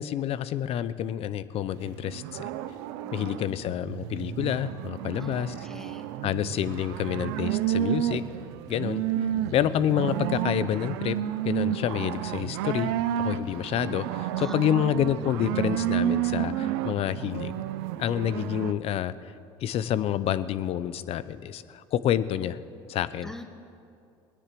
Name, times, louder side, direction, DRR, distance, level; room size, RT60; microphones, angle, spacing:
voice 1, 0.0-2.5 3.1-5.7 6.2-8.2 8.7-9.0 9.5-11.2 11.4-12.9 13.2-17.5 18.0-19.3 19.6-22.6 22.9-23.4, left 11 dB, 55° left, 16 dB, 0.7 m, -28 dB
sound 1, 1.7-18.7, right 11 dB, 85° right, 0.6 m, -31 dB
voice 2, 3.0-3.7 5.1-6.1 8.7-9.5 12.3-12.5 13.5-13.7 14.4-14.6 18.0-18.2 23.2-23.4, left 1 dB, 5° left, 7 dB, 1.4 m, -44 dB
18.5 x 9.9 x 7.6 m, 2.5 s
supercardioid pair, 90°, 12 cm